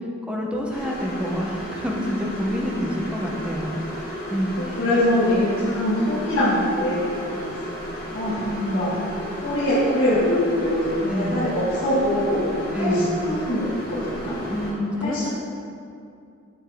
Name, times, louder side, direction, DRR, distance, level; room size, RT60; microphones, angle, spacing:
voice 1, 0.3-4.0 4.3-4.8 8.3-9.0 11.1-11.4 12.7-13.1 14.5-15.3, equal, 5° right, -1 dB, 0.7 m, -27 dB
sound 1, 0.7-14.7, equal, 45° left, 1.6 m, -33 dB
voice 2, 4.6-7.4 8.1-8.4 8.7-8.9 9.4-12.5 12.7-14.4 15.0-15.3, left 1 dB, 65° left, -10 dB, 1.4 m, -23 dB
8.5 x 5.4 x 3.5 m, 2.5 s
head